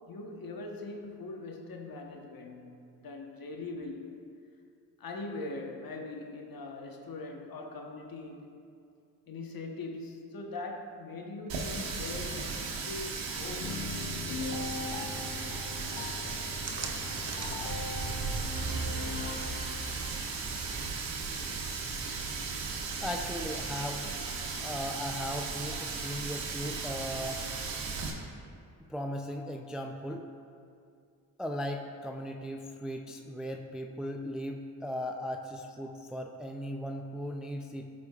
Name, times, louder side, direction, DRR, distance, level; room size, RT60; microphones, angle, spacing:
voice 1, 0.1-2.7 3.0-4.1 5.0-8.5 9.3-13.8, left 3 dB, 50° left, 2 dB, 1.1 m, -41 dB
Water tap faucet, 11.5-28.1, right 4 dB, 70° right, 1.2 m, -36 dB
sound 1, 13.6-20.4, left 4 dB, 80° left, 0.9 m, -40 dB
sound 2, 16.6-23.8, right 4 dB, 35° right, 0.9 m, -41 dB
voice 2, 23.0-24.1 24.6-27.5 28.9-30.3 31.4-37.9, equal, ahead, 3 dB, 0.4 m, -37 dB
14.5 x 4.9 x 2.4 m, 2.4 s
supercardioid pair, 50°, 45 cm